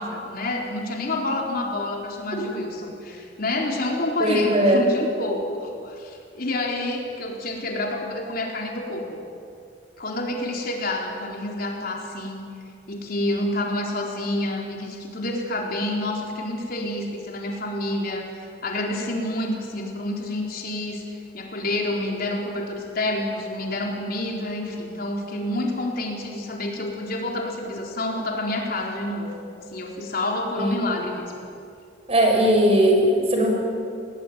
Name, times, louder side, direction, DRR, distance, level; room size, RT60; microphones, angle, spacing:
voice 1, 0.0-9.2 10.0-12.4 12.9-21.0 21.3-31.3, left 1 dB, 55° left, 0 dB, 4.2 m, -28 dB
voice 2, 4.2-4.8 30.6-31.0 32.1-33.6, equal, 35° right, 1 dB, 6.3 m, -19 dB
28.5 x 20.5 x 9.4 m, 2.4 s
head